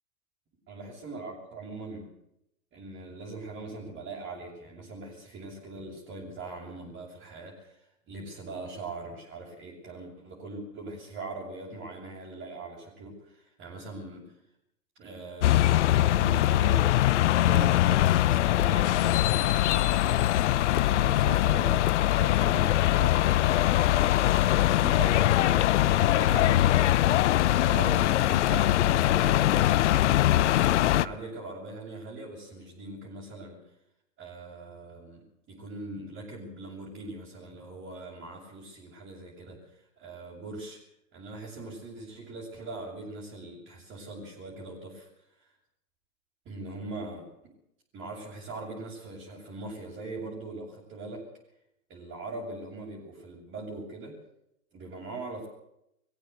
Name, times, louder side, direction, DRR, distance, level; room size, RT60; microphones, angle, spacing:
voice 1, 0.7-2.1 2.7-14.3 15.0-20.3 20.9-23.7 24.5-27.3 27.5-29.7 29.9-33.6 34.2-40.8 41.1-45.1 45.4-45.5 46.4-47.5 47.9-51.3 51.9-54.2 54.7-55.5, right 2 dB, 25° right, -4 dB, 6.9 m, -41 dB
sound 1, 15.4-31.1, left 14 dB, 55° left, 0.9 m, -22 dB
21.5 x 15.5 x 8.1 m, 0.78 s
hypercardioid pair, 120°, 43 cm